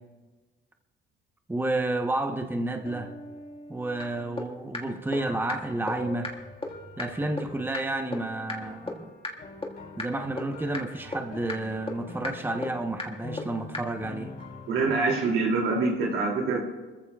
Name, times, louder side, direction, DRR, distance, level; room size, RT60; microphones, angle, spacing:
voice 1, 1.5-3.1 3.7-6.3 7.0-9.1 10.0-14.3, right 2 dB, 10° right, 1.0 m, -30 dB
sound 1, 2.7-14.9, left 2 dB, 50° left, 3.5 m, -45 dB
sound 2, 4.0-4.1 4.4-4.5 4.7-4.8 5.1-5.2 5.5-5.6 5.9-6.0 6.2-6.3 6.6-6.7 7.0-7.1 7.4-7.5 7.7-7.8 8.1-8.2 8.5-8.6 8.9-9.0 9.2-9.3 9.6-9.7 10.0-10.1 10.4-10.5 10.7-10.8 11.1-11.2 11.5-11.6 11.9-12.0 12.2-12.3 12.6-12.7 13.0-13.1 13.4-13.5 13.7-13.8, left 3 dB, 25° left, 1.8 m, -32 dB
voice 2, 14.7-16.6, right 3 dB, 90° right, 3.0 m, -25 dB
25.5 x 14.5 x 2.4 m
cardioid pair, 90°, 20 cm